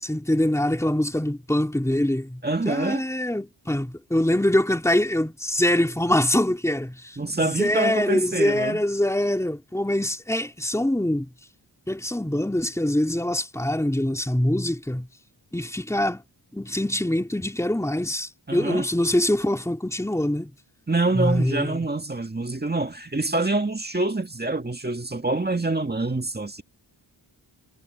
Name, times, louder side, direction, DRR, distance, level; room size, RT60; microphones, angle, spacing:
voice 1, 0.0-11.3 11.9-15.1 15.5-16.2 16.5-20.5 21.1-21.8, left 1 dB, 5° left, 2.9 m, -24 dB
voice 2, 2.4-3.0 7.2-8.8 18.5-18.9 20.9-26.6, right 2 dB, 25° right, 1.9 m, -26 dB
wide cardioid pair, 110°, 43 cm